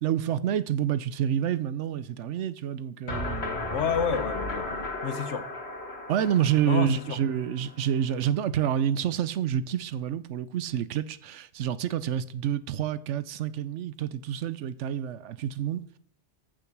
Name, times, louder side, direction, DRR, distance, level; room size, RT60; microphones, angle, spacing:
voice 1, 0.0-3.7 6.1-16.0, right 9 dB, 90° right, 1.0 m, -28 dB
sound 1, 3.1-8.0, left 2 dB, 65° left, 2.2 m, -35 dB
voice 2, 3.7-4.7 5.0-5.5 6.6-7.2, left 7 dB, 80° left, 1.3 m, -29 dB
14.5 x 6.4 x 6.0 m
omnidirectional pair, 1.2 m